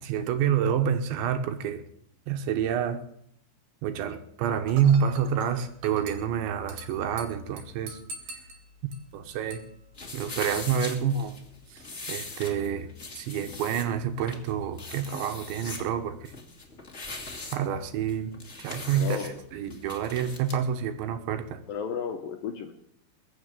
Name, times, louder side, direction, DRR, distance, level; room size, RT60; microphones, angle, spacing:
voice 1, 0.0-1.9 2.3-3.0 3.8-8.0 9.1-9.6 10.1-11.4 11.7-11.8 12.1-16.3 17.5-18.3 18.6-19.2 19.5-21.6, right 8 dB, 80° right, 8 dB, 3.6 m, -28 dB
Dishes pots and pans / Glass, 4.7-11.7, right 2 dB, 55° right, 4.0 m, -46 dB
sound 1, 9.9-20.6, left 3 dB, 25° left, 1.4 m, -41 dB
voice 2, 18.9-19.4 21.7-22.7, left 7 dB, 70° left, 5 dB, 2.3 m, -33 dB
21.5 x 7.3 x 8.9 m, 0.69 s
omnidirectional pair, 5.3 m